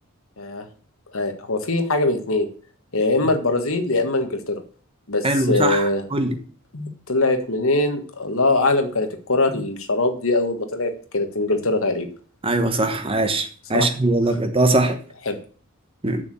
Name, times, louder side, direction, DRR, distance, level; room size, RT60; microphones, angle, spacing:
voice 1, 1.1-2.5 2.9-4.6 5.1-6.0 6.7-12.1 13.7-13.9 15.2-15.4, left 2 dB, 65° left, 6 dB, 1.6 m, -22 dB
voice 2, 5.2-6.4 12.4-15.0 16.0-16.2, right 2 dB, 25° right, 7 dB, 1.2 m, -21 dB
7.0 x 6.7 x 7.7 m, 0.42 s
head